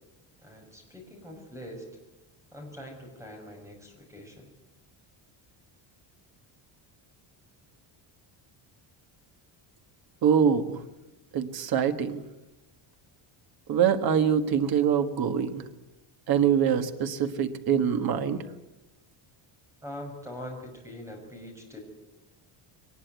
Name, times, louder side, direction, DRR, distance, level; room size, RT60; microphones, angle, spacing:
voice 1, 0.4-1.8 2.5-4.5 19.8-21.8, left 1 dB, 5° right, 2 dB, 6.2 m, -43 dB
voice 2, 10.2-10.8 11.3-12.2 13.7-15.7 16.3-18.4, right 8 dB, 45° right, 8 dB, 1.5 m, -24 dB
22.5 x 20.0 x 9.4 m, 0.97 s
cardioid pair, 180°, 49 cm